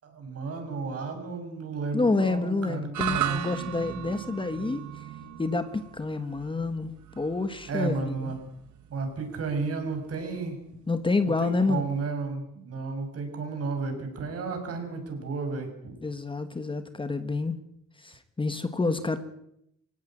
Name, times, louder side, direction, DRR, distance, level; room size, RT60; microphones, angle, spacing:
voice 1, 0.0-3.4 7.7-8.4 8.9-10.6 11.4-15.9, right 4 dB, 55° right, 5 dB, 6.6 m, -32 dB
voice 2, 1.9-5.1 5.4-6.9 7.2-8.3 10.9-11.9 16.0-17.6 18.0-19.2, left 3 dB, 15° left, 10 dB, 1.4 m, -28 dB
sound 1, 2.9-11.3, right 12 dB, 85° right, 1.4 m, -37 dB
24.5 x 17.5 x 8.9 m, 0.76 s
wide cardioid pair, 165°, 29 cm